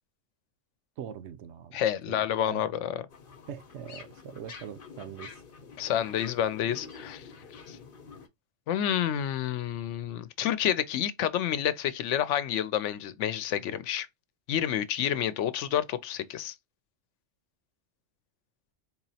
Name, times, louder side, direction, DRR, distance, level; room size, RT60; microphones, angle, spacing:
voice 1, 1.0-2.2 2.5-2.6 3.5-5.4, right 9 dB, 75° right, 0.9 m, -42 dB
voice 2, 1.7-3.0 5.8-7.3 7.7-7.8 8.7-14.1 14.5-16.5, left 10 dB, 85° left, 0.9 m, -29 dB
sound 1, 3.1-8.3, left 5 dB, 55° left, 0.9 m, -48 dB
4.3 x 2.9 x 2.7 m
omnidirectional pair, 1.2 m